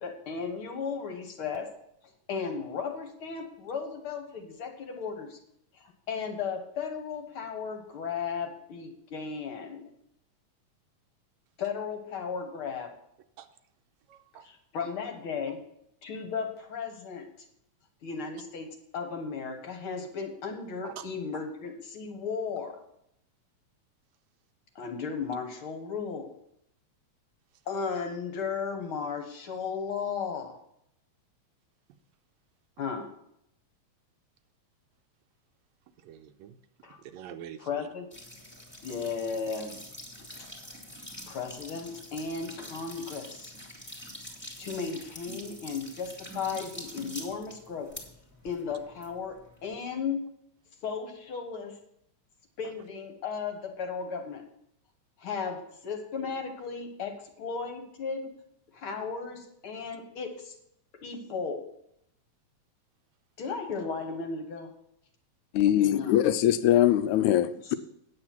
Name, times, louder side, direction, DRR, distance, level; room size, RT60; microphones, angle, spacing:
voice 1, 0.0-1.7 2.3-5.4 5.7-9.9 11.6-12.9 14.4-15.6 16.0-17.3 18.0-18.7 18.9-22.8 24.8-26.3 27.7-30.6 32.8-33.1 36.8-37.0 37.6-38.1 38.8-39.7 41.3-43.5 44.6-47.9 48.4-49.4 49.6-50.2 50.8-51.8 52.6-54.4 55.2-58.3 58.7-60.5 61.0-61.6 63.4-64.7 65.8-66.1 67.7-67.8, left 5 dB, 55° left, 1.8 m, -35 dB
voice 2, 14.1-14.5 20.8-21.0 36.0-36.6 37.0-37.9, right 10 dB, 80° right, 1.9 m, -45 dB
sound 1, 38.1-49.8, left 1 dB, 5° left, 2.1 m, -45 dB
voice 3, 65.5-67.7, left 12 dB, 85° left, 2.0 m, -22 dB
9.6 x 7.8 x 5.9 m
omnidirectional pair, 3.3 m